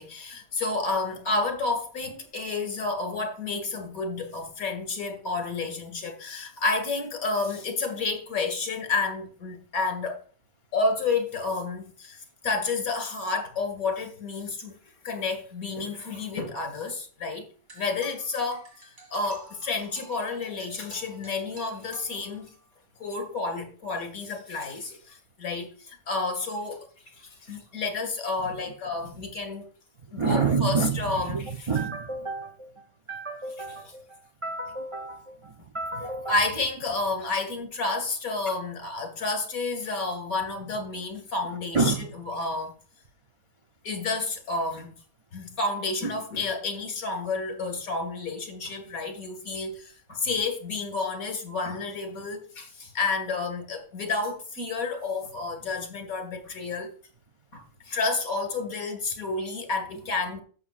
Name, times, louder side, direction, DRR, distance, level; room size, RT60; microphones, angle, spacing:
voice 1, 0.0-10.2 10.7-14.8 15.0-17.5 17.8-18.7 19.1-22.5 23.0-29.7 30.1-31.7 36.3-42.7 43.8-44.9 45.3-56.9 57.5-60.4, left 3 dB, 70° left, 5 dB, 2.4 m, -30 dB
sound 1, 17.7-22.7, right 2 dB, 70° right, 2.9 m, -50 dB
voice 2, 30.1-36.4 41.7-42.1, right 4 dB, 55° right, 4 dB, 0.3 m, -29 dB
11.5 x 7.2 x 2.4 m, 0.41 s
omnidirectional pair, 1.5 m